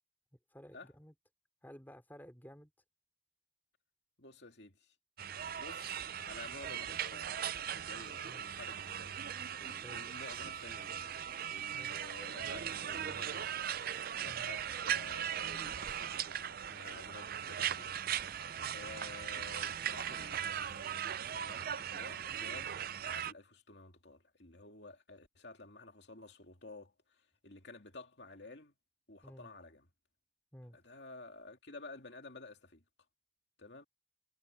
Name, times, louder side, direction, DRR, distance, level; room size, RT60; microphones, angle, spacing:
voice 1, 0.5-1.1 1.6-2.7 8.2-8.6 9.8-10.0 11.7-11.9 14.3-14.5 29.2-29.5 30.5-30.8, equal, 10° left, 2.9 m, -54 dB
voice 2, 4.2-4.9 5.6-7.3 7.7-9.2 9.6-13.8 14.2-18.1 18.7-21.0 21.3-28.7 29.1-29.9 30.7-32.8 33.6-33.8, left 2 dB, 55° left, 2.8 m, -52 dB
sound 1, 5.2-23.3, right 9 dB, 45° right, 0.5 m, -39 dB
sound 2, 12.3-18.7, right 4 dB, 85° right, 0.9 m, -55 dB
head